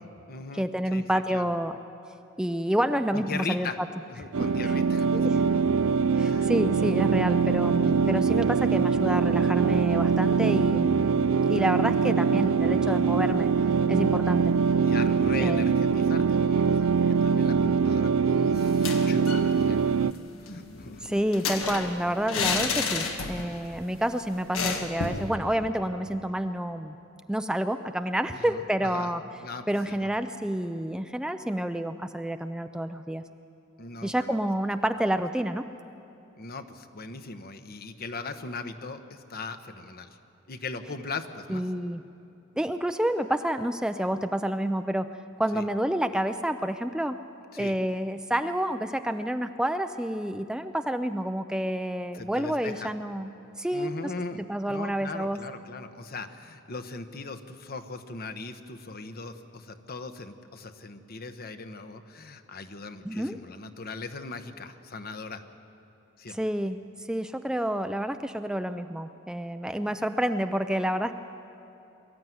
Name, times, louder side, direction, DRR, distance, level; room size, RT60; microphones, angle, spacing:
voice 1, 0.0-1.0 1.3-1.5 3.1-3.8 4.1-5.5 6.1-6.5 14.8-20.1 20.4-21.1 28.3-29.1 29.4-30.1 33.8-34.3 36.4-40.2 40.5-41.6 45.5-45.6 47.5-47.7 52.1-52.9 53.7-65.4 66.2-66.4, left 3 dB, 50° left, 8 dB, 1.0 m, -39 dB
voice 2, 0.5-1.8 2.4-3.9 4.4-4.7 5.1-5.4 6.2-11.2 11.5-13.5 13.9-14.5 15.4-15.7 21.0-27.0 27.3-29.2 29.7-33.2 34.0-35.7 41.5-42.0 42.6-45.1 45.4-47.2 47.6-53.3 53.6-53.9 54.4-55.4 63.1-63.4 66.3-66.8 67.1-71.1, right 1 dB, 5° right, 8 dB, 0.4 m, -29 dB
sound 1, 4.3-20.1, right 5 dB, 85° right, 0.4 m, -23 dB
sound 2, 18.7-19.5 19.8-19.9 20.2-23.6 23.9-24.0 24.5-25.3, left 4 dB, 85° left, 1.7 m, -31 dB
22.5 x 14.0 x 9.3 m, 2.7 s
head